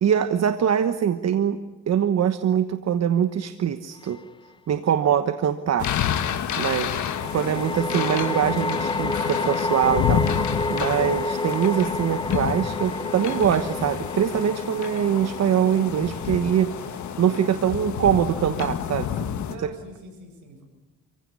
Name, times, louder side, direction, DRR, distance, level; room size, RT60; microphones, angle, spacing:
voice 1, 0.0-1.6 1.9-4.2 4.7-5.9 6.6-7.0 7.3-19.1 19.6-19.7, right 9 dB, 60° right, 10 dB, 1.2 m, -23 dB
sound 1, 4.1-4.2 7.0-18.4, left 3 dB, 15° left, 0.8 m, -31 dB
sound 2, 5.8-19.5, left 9 dB, 70° left, 1.8 m, -29 dB
voice 2, 6.7-8.0 19.4-20.6, right 2 dB, 75° right, 5 dB, 7.8 m, -44 dB
28.0 x 16.0 x 9.8 m, 1.2 s
cardioid pair, 90°, 30 cm